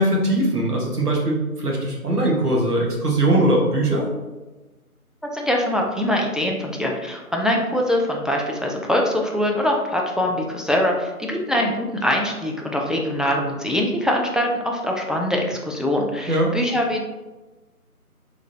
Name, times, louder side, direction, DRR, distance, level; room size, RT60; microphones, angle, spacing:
voice 1, 0.0-4.1 16.3-16.5, right 1 dB, 90° right, -2 dB, 1.3 m, -20 dB
voice 2, 5.3-17.0, left 1 dB, ahead, -1 dB, 0.3 m, -23 dB
3.6 x 3.2 x 2.6 m, 1.1 s
figure-of-eight pair, 170°, 45 cm